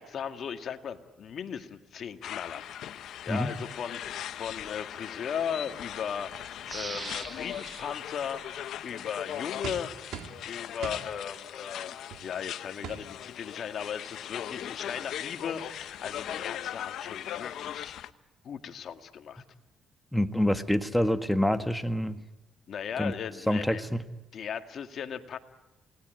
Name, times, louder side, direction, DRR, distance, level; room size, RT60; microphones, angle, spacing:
voice 1, 0.0-2.7 3.0-18.0 18.4-19.4 22.7-23.8 24.3-25.4, left 8 dB, 60° left, 7 dB, 1.9 m, -37 dB
sound 1, 2.2-18.1, left 11 dB, 75° left, 0.9 m, -39 dB
sound 2, 6.6-9.3 9.8-9.9, right 4 dB, 30° right, 0.8 m, -43 dB
sound 3, 9.6-10.4 10.8-11.1 12.1-12.3 12.8-13.0 13.8-13.9 14.0-14.3, right 7 dB, 75° right, 2.9 m, -39 dB
voice 2, 20.1-22.2 23.0-23.1 23.5-24.0, equal, 5° left, 8 dB, 1.5 m, -26 dB
28.5 x 19.0 x 9.2 m, 1.0 s
cardioid pair, 90°, 0 cm